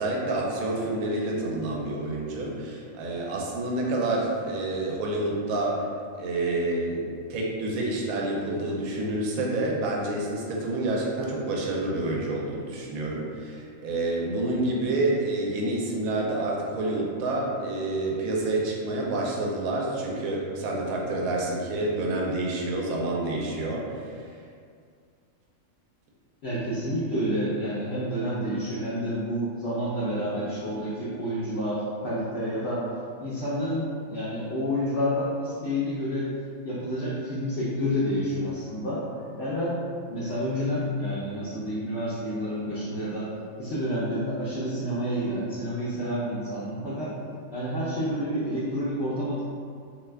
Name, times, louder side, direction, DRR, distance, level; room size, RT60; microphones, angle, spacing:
voice 1, 0.0-5.9 6.2-24.2, right 2 dB, 85° right, -2 dB, 1.0 m, -28 dB
voice 2, 26.4-32.8 33.2-36.3 36.6-39.0 39.4-39.8 40.1-43.3 43.6-47.1 47.5-49.4, equal, 60° left, -10 dB, 0.7 m, -29 dB
2.6 x 2.3 x 3.2 m, 2.2 s
omnidirectional pair, 1.4 m